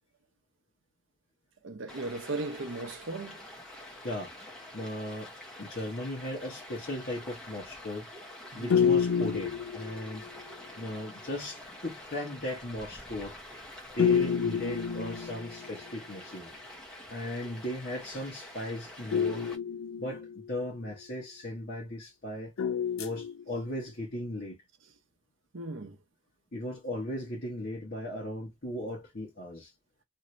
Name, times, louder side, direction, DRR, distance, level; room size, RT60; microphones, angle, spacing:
voice 1, 1.6-3.4 8.5-8.8 17.4-17.5 25.5-26.0, right 2 dB, 65° right, 0.7 m, -37 dB
Stream, 1.9-19.6, left 1 dB, 5° left, 0.7 m, -47 dB
voice 2, 4.7-5.3 5.6-8.1 8.5-10.2 10.8-13.4 13.9-16.5 17.1-19.5 20.0-22.5 23.0-24.6 26.5-29.7, left 1 dB, 45° left, 1.0 m, -37 dB
sound 1, 8.7-10.4 14.0-15.8 19.1-20.6 22.6-23.8, left 7 dB, 75° left, 0.5 m, -29 dB
2.7 x 2.6 x 3.1 m
head